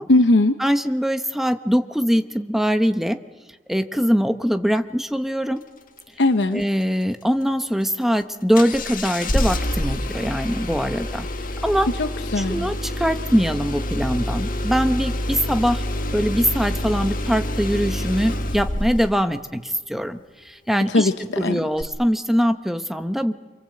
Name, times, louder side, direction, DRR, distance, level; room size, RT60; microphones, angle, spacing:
voice 1, 0.1-0.5 6.2-6.6 12.0-12.6 20.9-21.6, left 2 dB, 85° left, 8 dB, 0.9 m, -19 dB
voice 2, 0.6-3.2 3.7-5.6 6.5-11.3 11.6-11.9 12.4-15.8 16.1-20.2 20.4-21.1 21.4-23.3, equal, ahead, 8 dB, 1.0 m, -22 dB
Engine starting, 8.5-19.2 21.8-21.9, left 1 dB, 50° left, 1.7 m, -27 dB
28.5 x 23.0 x 7.8 m, 1.3 s
head